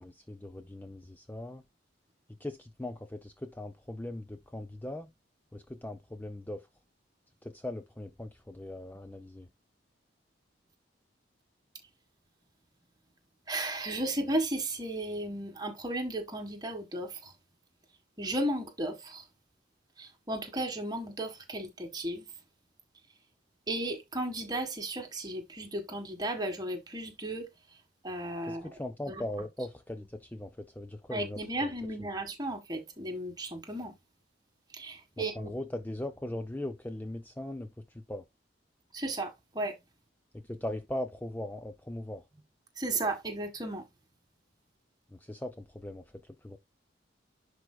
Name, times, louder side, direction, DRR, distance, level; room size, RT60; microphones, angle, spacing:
voice 1, 0.0-1.6 2.4-5.1 5.5-6.7 7.4-9.5 28.5-31.7 32.0-32.1 35.4-38.2 40.3-42.2 45.1-46.6, left 1 dB, 10° left, 0.5 m, -40 dB
voice 2, 13.5-17.3 18.2-19.3 20.0-22.3 23.7-27.5 28.0-28.8 29.1-29.2 31.1-33.9 34.7-35.5 38.9-39.8 42.8-43.9, right 1 dB, 20° right, 1.7 m, -34 dB
11.0 x 4.8 x 2.3 m
head